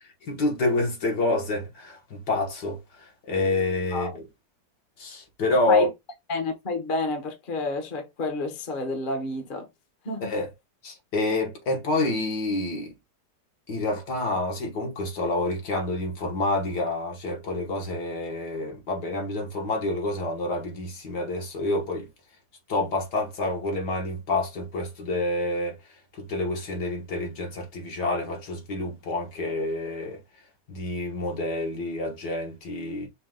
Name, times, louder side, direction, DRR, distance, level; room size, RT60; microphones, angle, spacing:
voice 1, 0.2-4.3 5.0-5.9 10.2-10.5 10.8-12.9 13.7-22.1 22.7-25.8 26.1-30.2 30.7-33.1, left 2 dB, 60° left, 2.0 m, -28 dB
voice 2, 6.3-9.7 10.0-10.3, left 3 dB, 30° left, 1.2 m, -29 dB
5.5 x 2.5 x 3.8 m
omnidirectional pair, 2.0 m